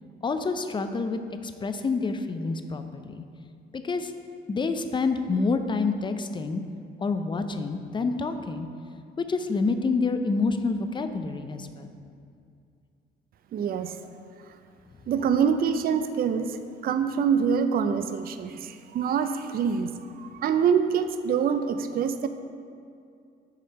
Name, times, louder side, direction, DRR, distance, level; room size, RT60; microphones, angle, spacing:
voice 1, 0.2-3.2 3.7-4.1 4.5-6.6 7.0-8.7 9.2-11.9, left 4 dB, 25° left, 8 dB, 0.4 m, -28 dB
voice 2, 13.5-14.0 14.5-14.6 15.1-16.6 16.8-22.3, right 7 dB, 50° right, 9 dB, 0.4 m, -25 dB
8.4 x 3.2 x 5.5 m, 2.4 s
cardioid pair, 90°, 20 cm